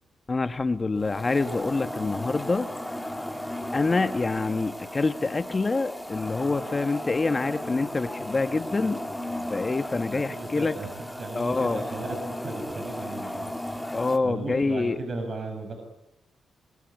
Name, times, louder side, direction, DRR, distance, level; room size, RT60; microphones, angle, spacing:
voice 1, 0.3-2.7 3.7-9.0 9.5-10.7 11.3-11.8 13.9-15.0, left 3 dB, 30° left, 11 dB, 1.2 m, -26 dB
sound 1, 1.0-14.2, left 1 dB, 5° left, 3.2 m, -35 dB
voice 2, 9.0-9.7 10.1-10.9 11.2-14.0 14.2-15.8, right 3 dB, 50° right, 5 dB, 7.0 m, -37 dB
27.0 x 22.0 x 9.4 m, 0.88 s
cardioid pair, 70°, 0 cm